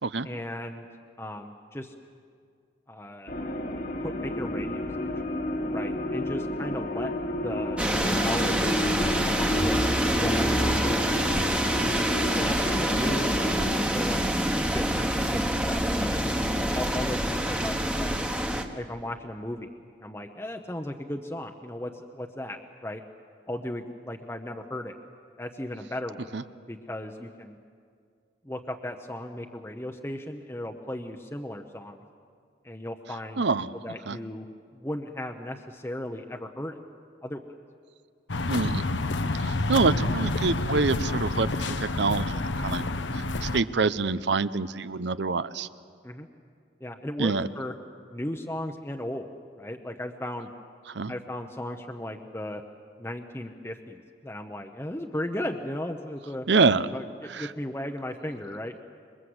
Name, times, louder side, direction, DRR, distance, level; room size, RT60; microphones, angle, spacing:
voice 1, 0.2-0.8 1.2-1.9 2.9-3.3 4.0-4.8 5.7-7.1 7.4-7.8 8.2-9.8 10.1-11.4 11.8-13.3 13.9-14.3 14.7-16.4 16.7-18.3 18.7-19.7 20.0-23.0 23.5-24.9 25.4-26.3 26.7-27.6 28.4-32.0 32.6-33.4 33.8-34.5 34.7-36.8 37.2-37.4 46.0-46.3 46.8-47.7 48.1-49.3 49.5-50.5 51.1-52.6 53.0-56.5 56.9-58.8, left 1 dB, 15° left, 3 dB, 0.9 m, -36 dB
sound 1, 3.3-13.8, left 1 dB, 45° left, 1.6 m, -31 dB
sound 2, 7.8-18.6, right 1 dB, 5° right, 1.3 m, -26 dB
voice 2, 33.4-33.7 34.1-34.2 38.5-38.8 39.4-42.8 43.1-45.7 47.2-47.5 50.9-51.1 56.5-56.9 57.3-57.5, right 4 dB, 75° right, 14 dB, 0.8 m, -26 dB
sound 3, 38.3-43.6, left 2 dB, 85° left, 1.0 m, -28 dB
27.0 x 23.5 x 8.0 m, 2.2 s
head